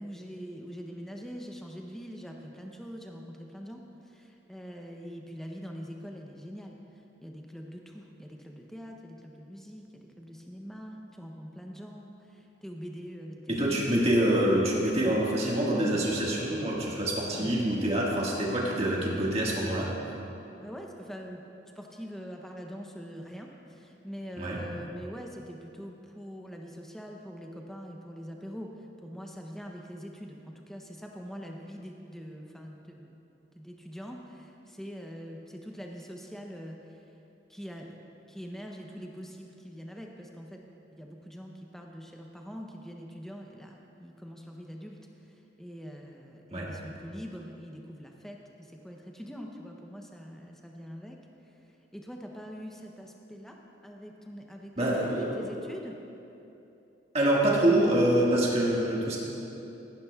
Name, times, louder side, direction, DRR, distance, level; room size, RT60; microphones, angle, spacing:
voice 1, 0.0-6.8 7.2-14.1 15.0-15.2 17.3-17.6 20.6-21.4 21.7-33.2 33.5-37.0 37.5-38.0 38.3-40.6 40.9-45.0 45.6-51.2 51.9-53.6 53.8-56.0, equal, ahead, 1 dB, 0.6 m, -43 dB
voice 2, 13.5-19.9 24.4-24.6 46.5-46.7 54.8-55.4 57.1-59.2, right 1 dB, 35° right, -4 dB, 1.7 m, -26 dB
15.5 x 11.5 x 2.3 m, 2.9 s
head